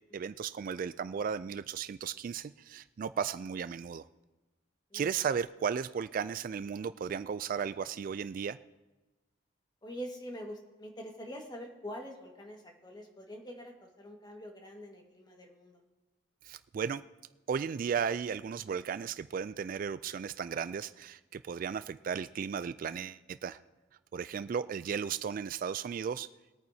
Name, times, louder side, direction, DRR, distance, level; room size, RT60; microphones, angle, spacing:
voice 1, 0.1-4.0 4.9-8.6 16.4-17.0 17.5-23.6 24.1-26.3, right 7 dB, 50° right, 14 dB, 0.3 m, -35 dB
voice 2, 9.8-15.8, equal, 20° left, 2 dB, 1.6 m, -45 dB
22.0 x 9.0 x 2.8 m, 1.1 s
head